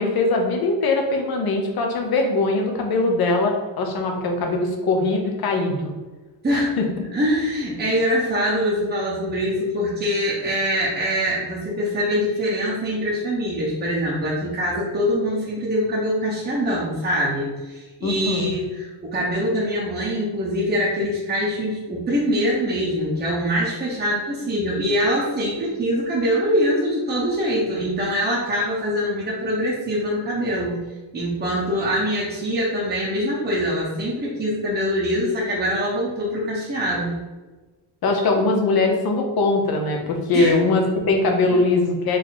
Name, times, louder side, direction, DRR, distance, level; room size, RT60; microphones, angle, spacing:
voice 1, 0.0-5.9 6.5-6.9 18.0-18.5 38.0-42.2, left 3 dB, 50° left, 2 dB, 0.9 m, -21 dB
voice 2, 7.1-30.8 31.1-37.1 40.3-40.5 41.5-41.6, equal, 20° right, -7 dB, 0.8 m, -23 dB
4.2 x 3.2 x 3.9 m, 1.2 s
cardioid pair, 170°, 47 cm